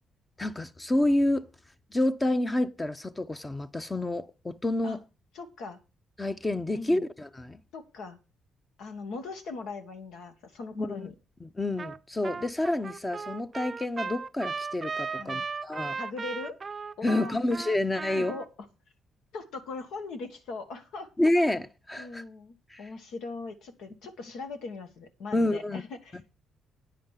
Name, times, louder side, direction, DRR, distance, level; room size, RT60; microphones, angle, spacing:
voice 1, 0.4-1.5 1.9-5.0 6.2-7.6 10.8-11.1 11.4-16.0 17.0-18.3 21.2-22.2 22.7-22.8 25.3-25.8 26.1-26.3, left 1 dB, 20° left, 0.7 m, -28 dB
voice 2, 5.3-5.8 6.7-7.1 7.7-8.2 8.8-11.1 15.1-15.5 16.0-16.6 17.0-17.4 18.1-18.5 19.3-21.1 22.0-26.2, left 3 dB, 80° left, 1.6 m, -40 dB
Trumpet, 11.8-12.0 12.2-18.5, right 5 dB, 35° right, 0.5 m, -36 dB
9.7 x 5.2 x 7.4 m
cardioid pair, 90°, 0 cm